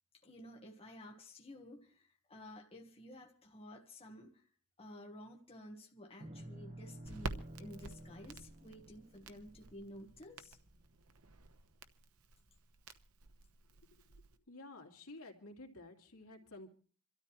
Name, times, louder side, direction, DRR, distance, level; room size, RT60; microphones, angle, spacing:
voice 1, 0.2-4.5 4.8-10.6, left 1 dB, 25° left, 1 dB, 1.4 m, -53 dB
sound 1, 6.2-10.6, right 1 dB, 35° right, 1.3 m, -52 dB
Crackle, 7.1-14.4, right 2 dB, 80° right, 1.0 m, -50 dB
voice 2, 14.5-16.7, left 2 dB, 75° left, 3 dB, 2.6 m, -52 dB
27.5 x 13.0 x 3.1 m, 0.41 s
head